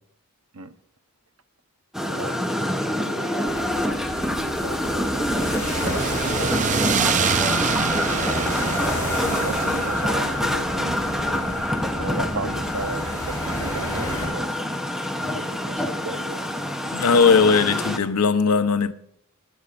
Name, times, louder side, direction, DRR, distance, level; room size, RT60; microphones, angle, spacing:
sound 1, 1.9-18.0, left 1 dB, ahead, 0.8 m, -26 dB
voice 1, 2.0-2.4 3.0-3.5 4.3-5.5 5.8-7.8 9.0-11.5 12.0-14.6 15.2-16.7, right 2 dB, 75° right, 0.8 m, -35 dB
sound 2, 3.5-14.3, left 1 dB, 15° left, 6.8 m, -32 dB
sound 3, 5.2-13.4, right 6 dB, 35° right, 0.4 m, -28 dB
voice 2, 16.9-18.9, left 5 dB, 90° left, 0.7 m, -18 dB
21.5 x 11.5 x 2.5 m
head